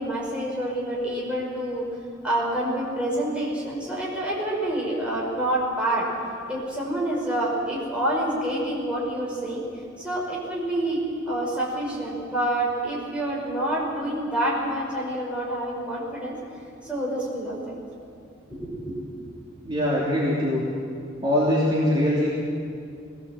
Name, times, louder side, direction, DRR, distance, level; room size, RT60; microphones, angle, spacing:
voice 1, 0.0-1.8 2.2-6.1 6.5-9.6 10.0-16.4 16.8-17.8 18.5-19.0, right 1 dB, 5° right, -5 dB, 5.6 m, -27 dB
voice 2, 19.6-20.6 21.2-22.3, left 1 dB, 25° right, -7 dB, 3.1 m, -22 dB
21.5 x 17.5 x 7.7 m, 2.4 s
head